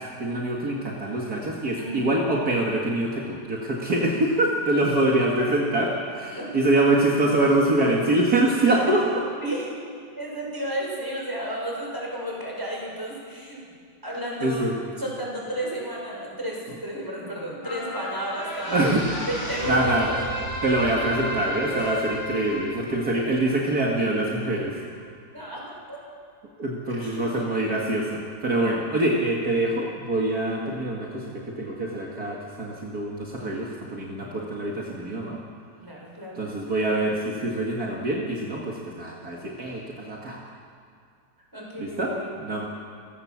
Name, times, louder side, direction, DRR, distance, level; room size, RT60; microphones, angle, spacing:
voice 1, 0.0-9.1 14.4-14.8 18.7-19.0 19.7-20.1 20.6-24.9 26.6-35.4 36.3-40.4 41.8-42.7, right 1 dB, 55° right, -3 dB, 2.6 m, -25 dB
voice 2, 1.7-2.1 6.3-6.5 9.4-9.7 10.2-13.6 14.0-14.6 15.0-19.0 19.3-20.1 21.7-21.9 25.3-25.6 25.9-26.0 26.9-27.8 35.8-36.4 41.5-42.4, right 1 dB, 10° right, -3 dB, 6.5 m, -33 dB
sound 1, 17.6-24.3 24.7-24.8, equal, 40° left, 4.3 m, -33 dB
30.0 x 16.0 x 7.4 m, 2.2 s
omnidirectional pair, 1.9 m